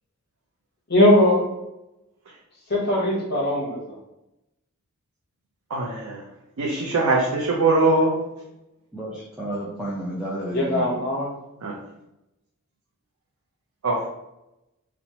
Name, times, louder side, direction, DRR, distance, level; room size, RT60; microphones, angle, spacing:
voice 1, 0.9-1.4 2.7-4.0 10.5-11.3, left 1 dB, 50° left, -2 dB, 0.8 m, -20 dB
voice 2, 5.7-6.2 6.6-8.2 11.6-11.8 13.8-14.1, right 2 dB, 90° right, -3 dB, 0.5 m, -22 dB
voice 3, 8.9-11.0, right 1 dB, 5° right, -8 dB, 0.3 m, -31 dB
2.9 x 2.1 x 2.7 m, 0.90 s
head